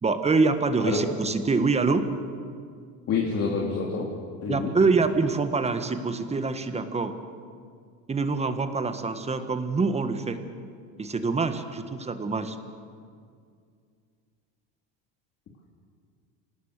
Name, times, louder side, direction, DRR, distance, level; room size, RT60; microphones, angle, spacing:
voice 1, 0.0-2.1 4.5-7.1 8.1-10.4 11.0-12.6, right 4 dB, 20° right, 9 dB, 1.5 m, -25 dB
voice 2, 3.1-4.1 4.4-4.7, left 5 dB, 45° left, -2 dB, 2.9 m, -27 dB
27.5 x 18.0 x 6.7 m, 2.2 s
supercardioid pair, 125°, 35 cm